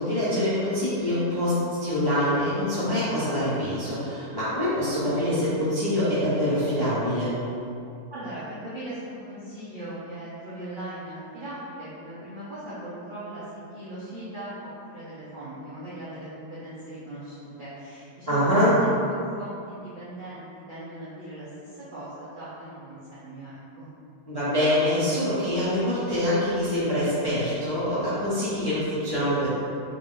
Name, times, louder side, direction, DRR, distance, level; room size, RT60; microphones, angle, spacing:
voice 1, 0.0-7.3 18.3-18.8 24.3-29.5, left 1 dB, 30° left, -12 dB, 0.4 m, -25 dB
voice 2, 8.1-13.4 13.7-23.9, right 1 dB, 75° right, -11 dB, 0.4 m, -39 dB
3.5 x 2.5 x 3.7 m, 2.6 s
omnidirectional pair, 1.8 m